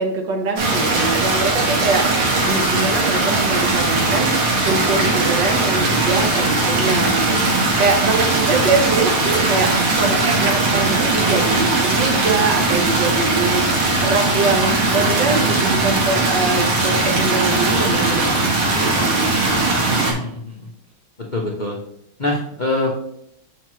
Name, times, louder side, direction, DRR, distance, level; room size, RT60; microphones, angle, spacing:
voice 1, 0.0-19.7, right 4 dB, 65° right, 3 dB, 1.6 m, -23 dB
sound 1, 0.6-20.1, right 2 dB, 80° right, 2.3 m, -19 dB
voice 2, 19.9-20.7 21.3-21.8 22.2-23.0, left 2 dB, 85° left, -1 dB, 0.4 m, -24 dB
7.3 x 5.6 x 3.1 m, 0.73 s
omnidirectional pair, 2.3 m